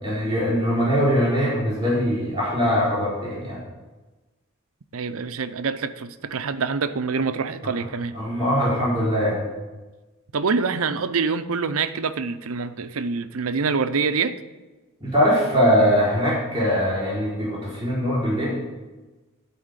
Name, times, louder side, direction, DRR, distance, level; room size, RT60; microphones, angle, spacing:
voice 1, 0.0-3.6 8.1-9.5 15.0-18.5, equal, 15° right, 3.9 m, -22 dB
voice 2, 4.9-8.2 10.3-14.4, right 5 dB, 75° right, 0.6 m, -25 dB
12.5 x 4.2 x 8.2 m
head